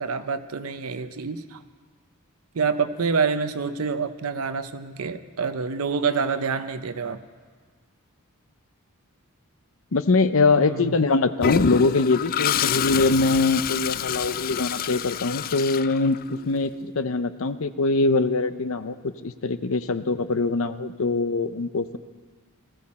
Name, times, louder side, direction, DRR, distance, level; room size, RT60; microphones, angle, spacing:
voice 1, 0.0-1.6 2.5-7.2 10.6-11.0, right 5 dB, 80° right, 10 dB, 0.7 m, -27 dB
voice 2, 9.9-18.9 19.2-22.0, left 3 dB, 70° left, 12 dB, 0.7 m, -23 dB
Toilet flush, 11.4-16.5, left 9 dB, 40° left, 0.3 m, -27 dB
19.5 x 14.5 x 4.3 m, 1.5 s
head